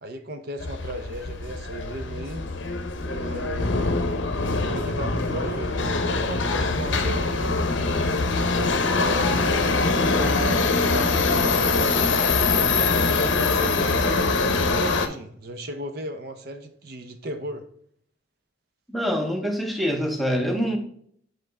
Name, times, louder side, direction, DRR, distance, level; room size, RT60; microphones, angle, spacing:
voice 1, 0.0-2.4 3.0-3.8 4.6-7.6 8.5-12.2 12.8-17.7, right 1 dB, 50° right, 7 dB, 0.6 m, -35 dB
Subway metro underground, 0.6-15.1, left 3 dB, 70° left, 0.7 m, -23 dB
voice 2, 18.9-20.8, equal, ahead, 3 dB, 0.7 m, -25 dB
7.4 x 3.9 x 3.3 m, 0.63 s
head